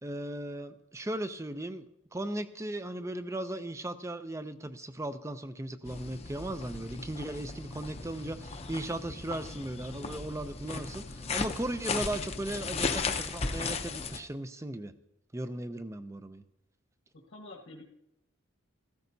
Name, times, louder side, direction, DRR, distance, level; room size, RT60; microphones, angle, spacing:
voice 1, 0.0-1.9 2.1-14.9 15.3-16.4, right 1 dB, 15° right, 0.5 m, -37 dB
sound 1, 5.8-14.2, left 4 dB, 30° left, 0.6 m, -36 dB
voice 2, 17.1-17.8, left 2 dB, 80° left, 1.4 m, -48 dB
15.0 x 14.0 x 2.7 m
head